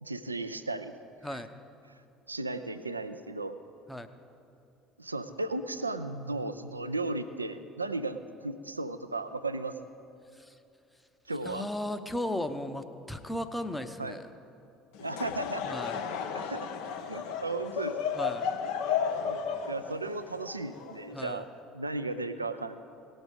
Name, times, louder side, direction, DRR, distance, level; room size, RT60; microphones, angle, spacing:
voice 1, 0.0-0.9 2.3-3.6 5.0-9.7 11.3-11.6 14.0-14.2 15.0-15.7 16.3-16.7 17.1-18.2 19.3-19.4 19.6-21.5 21.7-22.8, right 2 dB, 85° right, 10 dB, 0.4 m, -35 dB
voice 2, 11.4-14.3 15.7-16.0 18.2-18.5 21.1-21.4, left 1 dB, 5° left, 8 dB, 0.8 m, -35 dB
Laughter / Crowd, 14.9-21.4, left 7 dB, 60° left, 0.8 m, -34 dB
18.0 x 6.3 x 5.2 m, 2.7 s
figure-of-eight pair, 60°, 0 cm